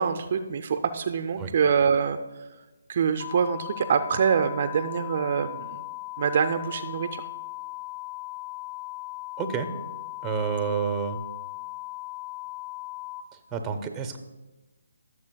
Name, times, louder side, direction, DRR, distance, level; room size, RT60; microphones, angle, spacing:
voice 1, 0.0-2.2 2.9-5.8 6.2-7.2, right 6 dB, 45° right, 8 dB, 0.4 m, -25 dB
sound 1, 3.2-13.2, left 22 dB, 75° left, 1.1 m, -38 dB
voice 2, 9.4-9.7 10.2-11.2 13.5-14.2, right 6 dB, 10° right, 6 dB, 0.7 m, -29 dB
16.0 x 6.8 x 2.3 m, 1.1 s
hypercardioid pair, 155°, 0 cm